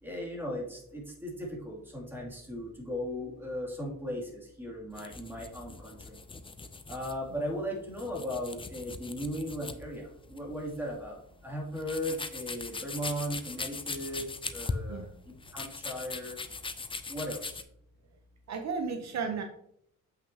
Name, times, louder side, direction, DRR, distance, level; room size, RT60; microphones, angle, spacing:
voice 1, 0.0-6.2 6.9-11.2 11.4-14.3 14.5-16.4 17.1-17.6, equal, 5° right, -3 dB, 2.6 m, -37 dB
sound 1, 4.9-17.6, left 4 dB, 15° left, 0.5 m, -41 dB
voice 2, 18.5-19.4, right 5 dB, 60° right, 4 dB, 0.9 m, -33 dB
7.6 x 5.9 x 2.8 m, 0.70 s
cardioid pair, 110°, 31 cm